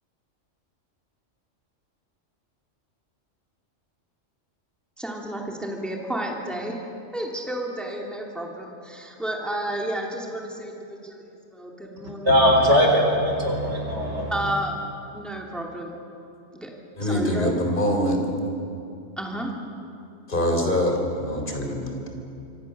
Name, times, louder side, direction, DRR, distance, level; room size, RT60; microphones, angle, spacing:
voice 1, 5.0-6.8 7.1-12.5 14.3-14.8 15.1-16.0 16.5-16.7 17.0-17.7 19.2-19.5, right 1 dB, ahead, 0 dB, 2.6 m, -31 dB
voice 2, 12.2-14.3, equal, 60° right, 1 dB, 4.5 m, -20 dB
voice 3, 17.0-18.3 20.3-22.1, equal, 40° left, 2 dB, 3.7 m, -24 dB
26.0 x 25.0 x 6.7 m, 2.7 s
omnidirectional pair, 1.3 m